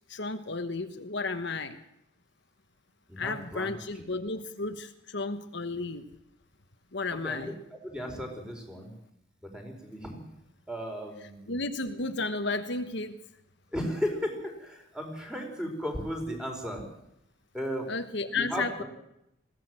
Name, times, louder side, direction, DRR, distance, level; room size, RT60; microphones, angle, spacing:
voice 1, 0.1-1.8 3.2-6.0 6.9-7.5 11.5-13.1 17.9-18.8, left 3 dB, 60° left, 8 dB, 1.2 m, -33 dB
voice 2, 3.1-4.0 7.2-8.9 9.4-10.1 10.7-11.6 13.7-16.8 17.5-17.9 18.3-18.8, equal, 5° right, 2 dB, 4.5 m, -35 dB
21.0 x 16.5 x 7.6 m, 0.81 s
head